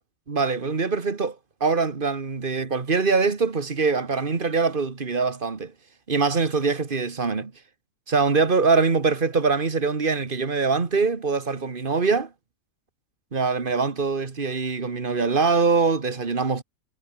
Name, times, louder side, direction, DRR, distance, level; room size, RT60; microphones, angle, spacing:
voice 1, 0.3-5.7 6.1-7.5 8.1-12.3 13.3-16.6, right 4 dB, 35° right, 1.9 m, -23 dB
omnidirectional pair, 1.5 m